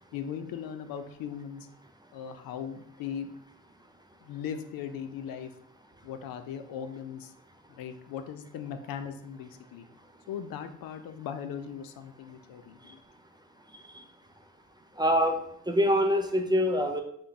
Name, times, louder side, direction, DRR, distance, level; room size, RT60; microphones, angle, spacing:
voice 1, 0.1-1.7 2.1-3.3 4.2-5.5 6.0-7.3 7.7-9.9 10.3-13.0, left 8 dB, 70° left, 8 dB, 0.5 m, -38 dB
voice 2, 15.0-15.4 15.7-17.0, equal, 10° right, 5 dB, 0.4 m, -25 dB
3.8 x 2.3 x 3.3 m, 0.71 s
supercardioid pair, 60°, 36 cm